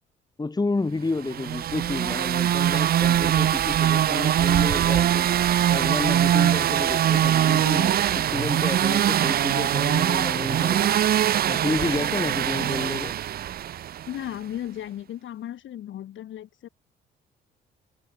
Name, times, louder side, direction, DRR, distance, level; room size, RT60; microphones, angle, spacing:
voice 1, 0.4-5.3 5.7-10.9 11.5-13.2, left 3 dB, 20° left, 2.9 m, -30 dB
sound 1, 1.3-14.2, right 11 dB, 50° right, 0.5 m, -22 dB
voice 2, 14.1-16.7, left 11 dB, 75° left, 7.0 m, -35 dB
cardioid pair, 90°, 20 cm